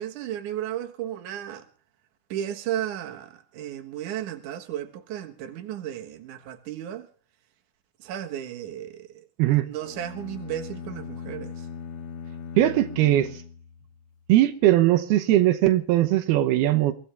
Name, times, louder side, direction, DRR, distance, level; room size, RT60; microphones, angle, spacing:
voice 1, 0.0-1.7 2.3-7.1 8.0-9.3 9.6-11.7, right 11 dB, 60° right, 2.7 m, -34 dB
sound 1, 9.8-14.2, left 6 dB, 70° left, 1.4 m, -39 dB
voice 2, 12.6-13.4 14.3-16.9, right 14 dB, 85° right, 2.9 m, -20 dB
23.0 x 16.0 x 3.4 m
omnidirectional pair, 4.5 m